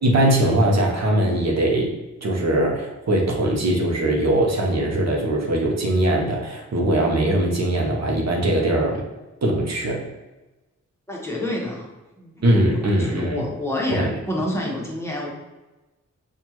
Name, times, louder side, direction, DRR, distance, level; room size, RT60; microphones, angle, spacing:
voice 1, 0.0-9.0 9.4-10.0 12.4-13.4 13.9-14.1, right 1 dB, 60° right, -1 dB, 0.8 m, -21 dB
voice 2, 11.1-11.9 12.2-15.3, left 1 dB, 10° left, -3 dB, 1.1 m, -28 dB
4.4 x 2.4 x 2.9 m, 1.1 s
cardioid pair, 50°, 31 cm